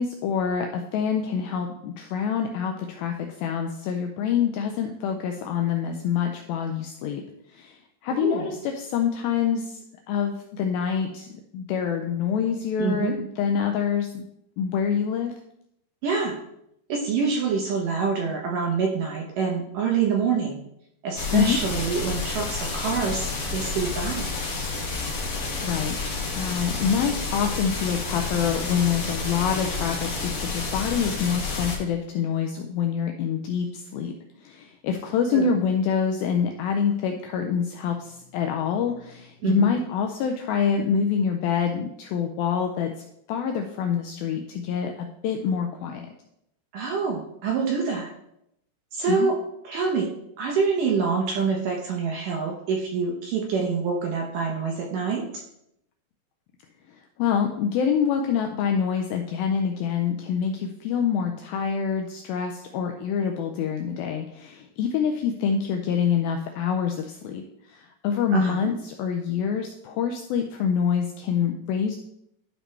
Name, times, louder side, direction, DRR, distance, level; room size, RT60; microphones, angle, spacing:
voice 1, 0.0-7.2 7.5-9.8 10.1-14.2 14.6-15.3 21.3-21.6 25.6-26.0 26.3-42.9 43.3-46.1 49.1-49.3 56.9-72.0, left 7 dB, 85° left, 4 dB, 2.1 m, -26 dB
voice 2, 8.1-8.5 12.8-13.2 16.0-16.4 16.9-20.6 21.0-24.2 35.3-35.5 39.4-39.7 46.7-48.1 48.9-49.4 49.7-50.1 50.4-55.2 68.3-68.7, right 5 dB, 75° right, 0 dB, 2.1 m, -26 dB
sound 1, 21.1-31.8, left 3 dB, 45° left, 2.1 m, -30 dB
12.0 x 5.0 x 3.2 m, 0.78 s
omnidirectional pair, 4.8 m